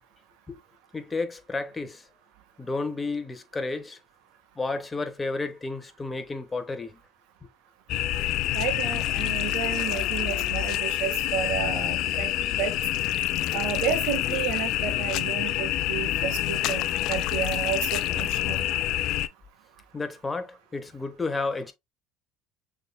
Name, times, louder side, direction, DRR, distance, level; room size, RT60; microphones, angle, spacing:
voice 1, 0.9-2.1 2.6-4.0 4.6-7.0 13.4-13.6 14.3-14.4 15.2-15.3 19.9-21.7, left 3 dB, 20° left, 1.1 m, -32 dB
sound 1, 7.9-19.3, left 14 dB, 65° left, 0.5 m, -27 dB
voice 2, 8.5-12.7 13.5-18.7, right 9 dB, 70° right, 1.4 m, -32 dB
6.4 x 3.6 x 2.2 m
supercardioid pair, 90°, 0 cm